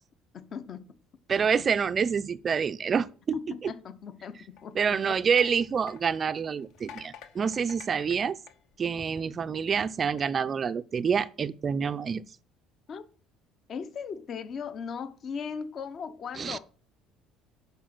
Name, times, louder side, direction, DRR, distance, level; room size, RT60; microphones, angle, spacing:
voice 1, 0.3-0.9 1.6-1.7 3.3-5.2 12.9-13.0 13.7-16.6, left 6 dB, 30° left, 0.7 m, -38 dB
voice 2, 1.3-3.7 4.8-8.4 8.8-12.2 16.4-16.6, right 6 dB, 25° right, 0.4 m, -27 dB
sound 1, 4.5-9.4 10.0-10.2, left 8 dB, 55° left, 1.2 m, -50 dB
10.0 x 5.6 x 6.0 m
cardioid pair, 180°, 0 cm